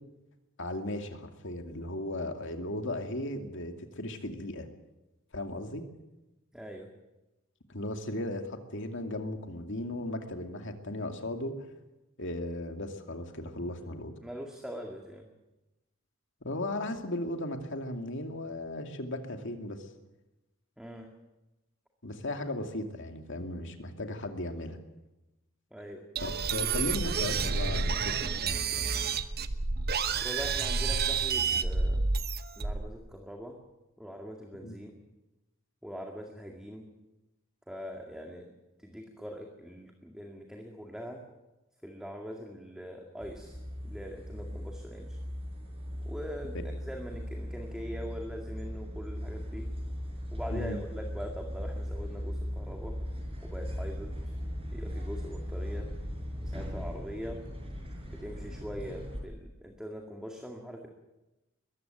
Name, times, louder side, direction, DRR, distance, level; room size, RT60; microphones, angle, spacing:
voice 1, 0.6-4.7 5.3-5.8 7.7-11.5 12.2-14.1 16.4-19.9 22.0-24.8 26.2-28.9 34.6-34.8 50.5-50.8, left 1 dB, 65° left, 5 dB, 2.5 m, -36 dB
voice 2, 6.5-6.9 14.2-15.3 20.8-21.1 25.7-26.0 29.2-29.3 30.2-32.1 32.6-33.6 34.0-35.0 35.8-36.9 37.7-38.5 38.8-41.2 41.8-43.6 43.8-45.2 46.0-46.6 46.8-49.7 50.3-53.0 53.4-54.3 54.7-55.9 56.5-57.4 58.1-60.9, equal, 5° right, 2 dB, 2.1 m, -42 dB
sound 1, 26.2-33.0, right 5 dB, 50° right, 1.1 m, -29 dB
sound 2, 43.2-59.2, equal, 30° right, 5.5 m, -38 dB
21.5 x 15.0 x 9.3 m, 1.0 s
head